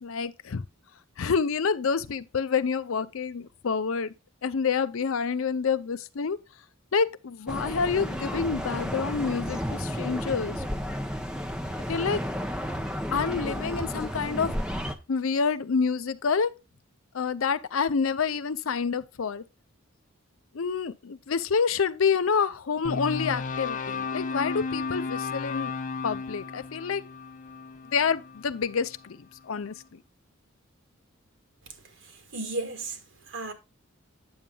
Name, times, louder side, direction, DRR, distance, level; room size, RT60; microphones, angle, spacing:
voice 1, 0.0-0.6 1.2-4.1 4.4-6.4 6.9-10.6 11.9-12.2 13.1-14.6 15.1-16.5 17.1-19.4 20.5-25.7 26.0-27.0 27.9-30.0, left 5 dB, 75° left, 0.6 m, -28 dB
sound 1, 7.5-14.9, equal, 5° right, 0.7 m, -32 dB
sound 2, 22.8-29.1, left 4 dB, 40° left, 0.6 m, -34 dB
voice 2, 32.0-33.0 33.3-33.5, right 2 dB, 65° right, 1.5 m, -34 dB
8.7 x 7.0 x 2.3 m
head